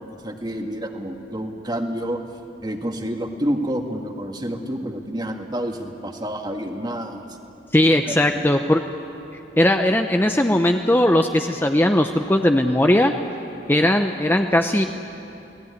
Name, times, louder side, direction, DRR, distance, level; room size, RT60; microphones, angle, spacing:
voice 1, 0.0-2.2 2.6-7.3 8.1-8.5, equal, 20° right, 4 dB, 1.9 m, -29 dB
voice 2, 7.7-8.8 9.6-13.1 13.7-14.9, left 1 dB, 10° left, 5 dB, 0.7 m, -18 dB
29.0 x 18.5 x 9.7 m, 2.8 s
head